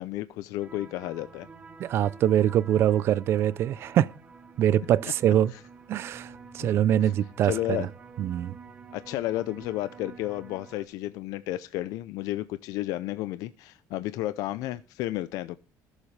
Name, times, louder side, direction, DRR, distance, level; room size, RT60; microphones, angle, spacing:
voice 1, 0.0-1.5 5.5-5.6 6.6-6.7 7.0-7.1 7.4-7.9 8.9-15.6, left 15 dB, 70° left, 0.5 m, -32 dB
sound 1, 0.6-10.8, right 5 dB, 20° right, 0.9 m, -49 dB
voice 2, 1.8-4.1 4.6-5.5 5.9-7.8 8.2-8.5, right 11 dB, 40° right, 0.4 m, -24 dB
17.0 x 7.2 x 3.3 m
cardioid pair, 180°, 6 cm